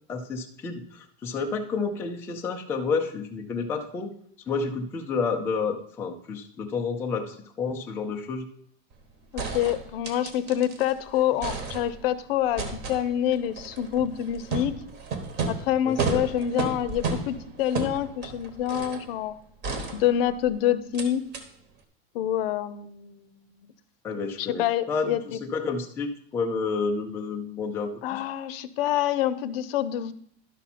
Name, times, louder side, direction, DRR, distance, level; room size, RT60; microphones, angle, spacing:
voice 1, 0.1-4.1 4.5-8.5 15.8-16.2 24.0-28.2, left 4 dB, 10° left, 1 dB, 0.4 m, -30 dB
sound 1, 8.9-9.0 9.4-10.9 11.2-12.2 12.6-19.1 19.6-20.5 20.9-21.1 21.3-21.4, right 4 dB, 30° right, 1.2 m, -33 dB
voice 2, 9.3-14.7 15.5-19.3 19.9-21.2 22.1-23.6 24.1-25.4 28.0-30.1, left 11 dB, 65° left, 14 dB, 0.7 m, -27 dB
11.5 x 5.7 x 4.2 m, 0.63 s
supercardioid pair, 160°, 32 cm